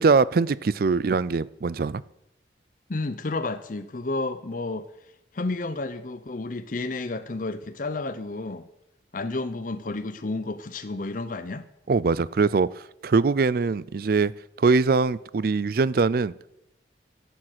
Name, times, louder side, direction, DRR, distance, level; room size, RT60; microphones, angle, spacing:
voice 1, 0.0-2.0 11.9-14.3 14.6-16.5, right 4 dB, 50° right, 0.4 m, -22 dB
voice 2, 2.9-4.9 5.3-8.7 9.1-11.7, left 2 dB, 45° left, 0.6 m, -31 dB
11.5 x 8.7 x 7.9 m
head